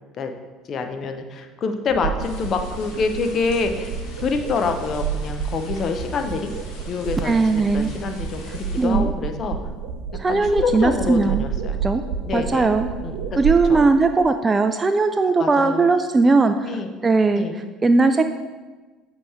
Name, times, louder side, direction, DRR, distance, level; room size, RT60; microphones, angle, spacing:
voice 1, 0.7-3.9 4.2-6.5 6.9-9.6 10.3-11.8 12.2-12.7 13.0-13.4 13.7-13.8 15.4-15.8 16.6-16.9 17.4-17.6, left 4 dB, 50° left, 6 dB, 0.7 m, -26 dB
sound 1, 1.9-13.6, right 7 dB, 80° right, 0.5 m, -30 dB
sound 2, 2.2-8.9, left 2 dB, 70° left, 1.4 m, -43 dB
voice 2, 7.2-7.9 8.8-9.1 10.2-11.5 11.8-12.0 12.3-12.9 13.4-18.2, right 3 dB, 25° right, 8 dB, 0.3 m, -19 dB
7.6 x 3.0 x 4.9 m, 1.3 s
hypercardioid pair, 70°, 0 cm